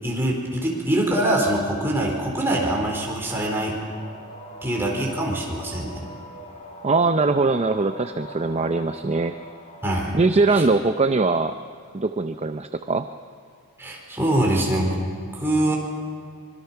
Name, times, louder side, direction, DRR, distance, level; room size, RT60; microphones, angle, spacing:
voice 1, 0.0-3.8 4.6-6.0 9.8-10.2 13.8-15.0 15.3-15.8, right 1 dB, 10° right, -1 dB, 4.4 m, -23 dB
sound 1, 3.9-10.1, right 1 dB, 30° left, 3.6 m, -42 dB
voice 2, 6.8-9.4 10.1-11.6 11.9-13.1, right 3 dB, 30° right, 8 dB, 0.5 m, -21 dB
25.0 x 23.5 x 5.8 m, 2.1 s
head